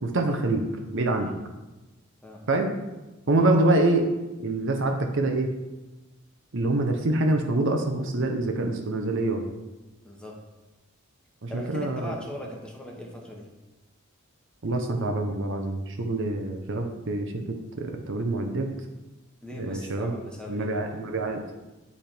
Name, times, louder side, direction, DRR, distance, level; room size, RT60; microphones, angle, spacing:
voice 1, 0.0-0.6 0.9-1.3 2.5-2.7 3.3-4.1 4.4-5.5 6.5-9.5 11.4-12.1 14.6-18.7 19.5-20.1 20.5-21.4, right 2 dB, 60° right, 4 dB, 0.8 m, -25 dB
voice 2, 10.0-10.4 11.5-13.5 19.4-21.0, left 1 dB, 5° left, -1 dB, 1.1 m, -39 dB
9.8 x 3.4 x 4.4 m, 1.1 s
head